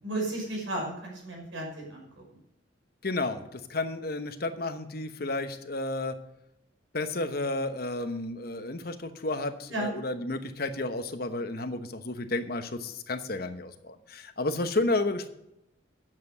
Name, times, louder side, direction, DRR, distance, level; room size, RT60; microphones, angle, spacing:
voice 1, 0.0-2.2 9.7-9.9, right 1 dB, 85° right, 0 dB, 5.6 m, -34 dB
voice 2, 3.0-6.1 6.9-15.3, left 2 dB, 50° left, 8 dB, 1.0 m, -32 dB
9.8 x 7.7 x 7.8 m, 0.84 s
head